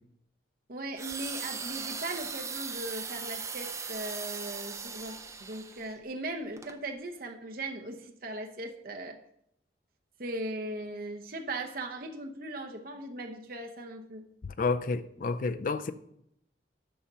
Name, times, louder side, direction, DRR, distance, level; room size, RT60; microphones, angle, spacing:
voice 1, 0.7-9.2 10.2-14.3, right 2 dB, 50° right, 0.9 m, -38 dB
sound 1, 1.0-5.9 6.6-6.7, right 5 dB, 15° right, 0.4 m, -38 dB
voice 2, 14.4-15.9, left 4 dB, 45° left, 0.4 m, -30 dB
7.1 x 5.4 x 6.1 m
head